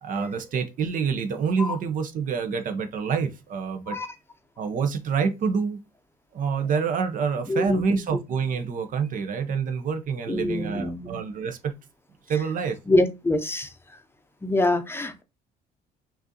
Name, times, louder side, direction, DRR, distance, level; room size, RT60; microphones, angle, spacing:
voice 1, 0.0-4.0 4.6-5.8 6.3-11.8 12.3-12.8, right 6 dB, 55° right, 0.7 m, -27 dB
voice 2, 7.5-8.0 10.3-11.2 12.9-13.7 14.4-15.2, left 2 dB, 15° left, 0.7 m, -25 dB
5.9 x 2.6 x 2.7 m
cardioid pair, 110°, 17 cm